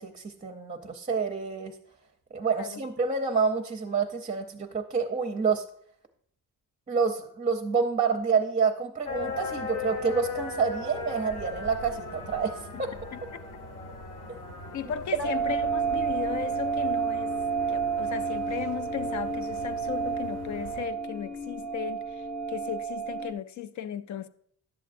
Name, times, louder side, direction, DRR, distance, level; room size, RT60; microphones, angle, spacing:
voice 1, 0.0-1.7 2.3-5.6 6.9-12.9, right 5 dB, 25° right, 0.6 m, -28 dB
sound 1, 9.1-20.9, left 4 dB, 80° left, 1.6 m, -39 dB
voice 2, 13.1-13.4 14.7-17.3 17.7-22.2 22.5-24.3, left 10 dB, 60° left, 0.4 m, -36 dB
sound 2, 15.2-23.3, right 5 dB, 30° left, 0.8 m, -30 dB
11.0 x 7.3 x 2.5 m
wide cardioid pair, 130°, 33 cm